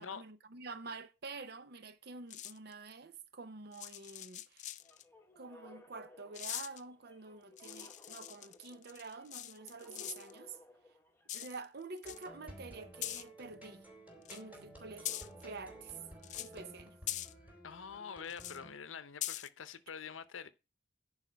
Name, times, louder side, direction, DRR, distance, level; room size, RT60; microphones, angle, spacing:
voice 1, 0.0-4.7 5.4-10.6 11.3-13.9 14.3-16.0 16.4-17.0, right 4 dB, 55° right, 0.7 m, -48 dB
sound 1, 2.3-2.7 3.7-5.0 6.3-6.8 7.6-10.3 11.3-11.6 12.0-12.2 13.0-13.2 14.2-14.4 15.0-15.4 16.2-16.6 17.1-17.3 18.3-18.6 19.2-19.5, left 13 dB, 40° left, 0.4 m, -42 dB
sound 2, 4.8-11.7, left 1 dB, 10° left, 1.1 m, -59 dB
sound 3, 12.0-18.7, right 1 dB, 10° right, 3.7 m, -53 dB
voice 2, 17.6-20.5, left 6 dB, 80° left, 0.7 m, -46 dB
10.5 x 4.8 x 5.6 m
head